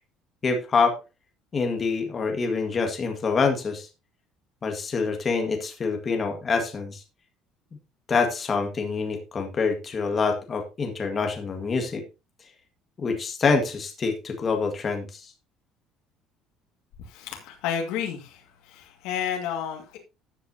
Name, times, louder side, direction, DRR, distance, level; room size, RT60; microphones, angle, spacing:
voice 1, 0.4-1.0 1.5-3.9 4.6-7.0 8.1-12.0 13.0-15.3, left 4 dB, 25° left, 4 dB, 1.7 m, -26 dB
voice 2, 17.1-18.3 18.7-20.0, left 8 dB, 75° left, 3 dB, 2.0 m, -31 dB
13.5 x 7.7 x 2.8 m, 0.27 s
cardioid pair, 170°, 0 cm